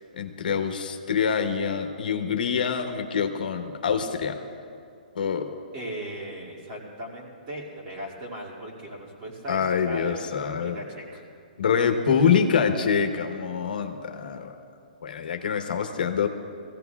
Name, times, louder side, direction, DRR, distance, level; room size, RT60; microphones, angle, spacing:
voice 1, 0.2-4.4 5.1-5.5 9.5-10.8 11.6-14.5 15.0-16.3, left 6 dB, 70° left, 6 dB, 1.0 m, -25 dB
voice 2, 5.7-10.3 10.5-11.2, equal, 25° right, -3 dB, 2.3 m, -38 dB
20.5 x 15.0 x 2.3 m, 2.4 s
hypercardioid pair, 170°, 5 cm